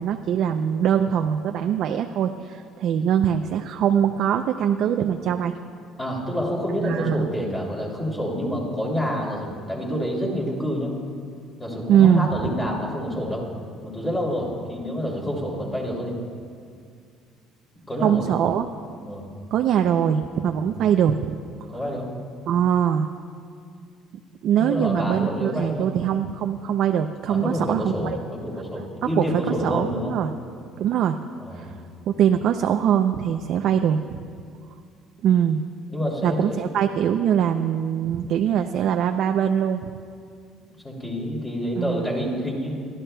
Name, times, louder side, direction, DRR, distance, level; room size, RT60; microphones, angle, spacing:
voice 1, 0.0-5.5 6.8-7.3 11.9-12.3 18.0-18.7 19.5-21.4 22.5-23.1 24.4-28.2 29.2-29.3 29.6-30.3 30.8-31.2 31.5-31.7 32.1-34.2 35.2-35.6 36.2-39.8 41.8-42.1, right 9 dB, 60° right, 5 dB, 0.5 m, -22 dB
voice 2, 6.0-10.9 11.6-13.4 13.8-16.2 17.9-18.2 19.0-19.3 20.4-20.7 21.7-22.1 24.6-25.9 27.3-30.1 31.4-31.7 35.9-36.6 40.8-42.8, equal, 10° left, -2 dB, 2.8 m, -28 dB
29.0 x 12.5 x 2.3 m, 2.2 s
cardioid pair, 140°, 0 cm